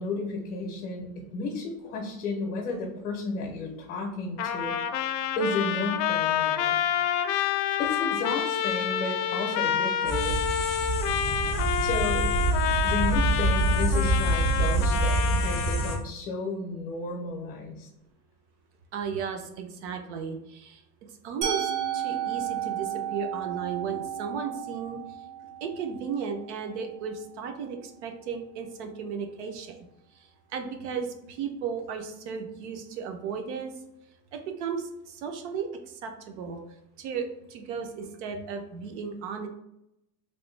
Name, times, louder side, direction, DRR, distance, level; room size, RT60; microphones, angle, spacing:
voice 1, 0.0-4.8 5.4-6.8 7.8-10.4 11.8-12.3 12.8-17.9, left 3 dB, 40° left, 1 dB, 0.6 m, -33 dB
Trumpet, 4.4-16.0, left 9 dB, 90° left, 0.5 m, -28 dB
sound 1, 10.0-15.9, right 2 dB, 10° left, 0.3 m, -26 dB
voice 2, 18.9-20.8 21.2-25.0 25.6-29.8 30.5-33.7 34.3-35.7 36.0-36.6 37.0-39.5, right 6 dB, 50° right, 5 dB, 0.4 m, -35 dB
Musical instrument, 21.4-27.3, right 10 dB, 80° right, 1.1 m, -34 dB
3.1 x 2.6 x 3.1 m, 0.84 s
supercardioid pair, 175°, 48 cm